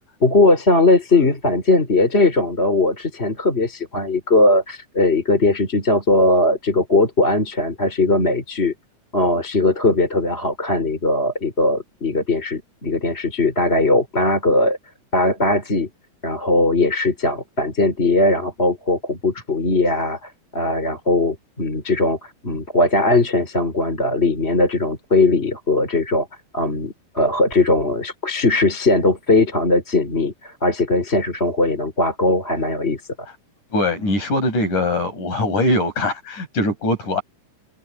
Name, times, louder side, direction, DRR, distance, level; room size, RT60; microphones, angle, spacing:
voice 1, 0.2-8.7 9.1-14.8 15.1-15.9 16.2-26.3 26.5-33.0, left 2 dB, 20° left, 4.1 m, -19 dB
voice 2, 33.7-37.2, left 1 dB, 80° left, 8.8 m, -21 dB
omnidirectional pair, 3.5 m